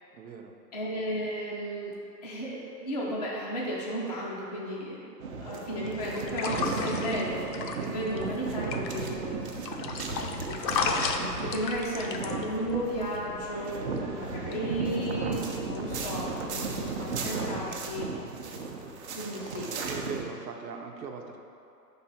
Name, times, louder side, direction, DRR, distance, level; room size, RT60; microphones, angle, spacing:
voice 1, 0.1-0.5 11.7-11.8 19.8-21.4, right 5 dB, 85° right, 3 dB, 0.9 m, -40 dB
voice 2, 0.7-1.9 2.2-5.1 5.4-9.6 9.9-10.1 10.5-18.1 19.2-20.1, equal, 30° left, -7 dB, 0.4 m, -34 dB
sound 1, 5.2-20.2, right 4 dB, 45° right, 0.7 m, -35 dB
sound 2, 6.0-18.0, left 4 dB, 85° left, 0.8 m, -36 dB
5.3 x 4.0 x 5.7 m, 2.7 s
hypercardioid pair, 150°, 49 cm